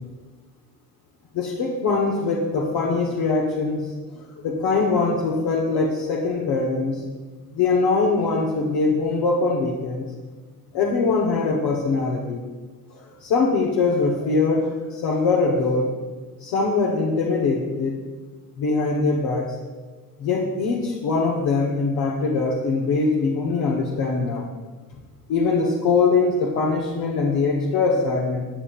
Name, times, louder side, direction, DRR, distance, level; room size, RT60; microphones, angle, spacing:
voice 1, 1.3-3.8 4.1-7.0 7.5-10.1 10.7-12.4 12.9-15.9 16.4-18.0 18.6-19.5 20.2-24.5 25.3-28.5, left 4 dB, 75° left, -2 dB, 1.2 m, -22 dB
13.0 x 7.0 x 2.5 m, 1.4 s
supercardioid pair, 75°, 42 cm